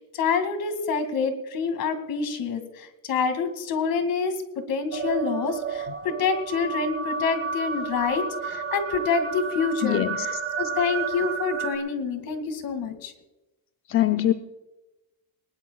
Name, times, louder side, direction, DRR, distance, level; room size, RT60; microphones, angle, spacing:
voice 1, 0.0-4.3 4.7-13.1, left 5 dB, 60° left, 8 dB, 2.4 m, -27 dB
sound 1, 4.9-11.8, right 5 dB, 35° right, 2.2 m, -31 dB
voice 2, 9.8-10.3 13.9-14.3, left 12 dB, 35° left, 8 dB, 0.6 m, -22 dB
21.5 x 20.0 x 2.4 m, 1.0 s
cardioid pair, 150°, 40 cm